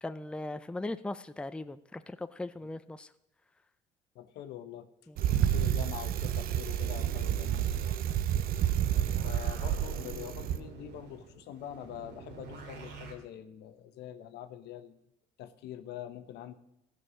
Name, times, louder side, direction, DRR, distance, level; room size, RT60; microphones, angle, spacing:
voice 1, 0.0-3.1 5.1-5.2, left 2 dB, 5° left, 11 dB, 0.4 m, -39 dB
voice 2, 4.1-4.9 5.3-8.0 9.2-15.0 15.4-16.5, left 10 dB, 80° left, 10 dB, 1.0 m, -44 dB
Bicycle, 5.2-10.6, right 11 dB, 60° right, 0.6 m, -30 dB
sound 1, 6.8-13.1, right 5 dB, 85° right, 2.3 m, -47 dB
15.5 x 6.6 x 6.2 m, 0.82 s
cardioid pair, 110°, 17 cm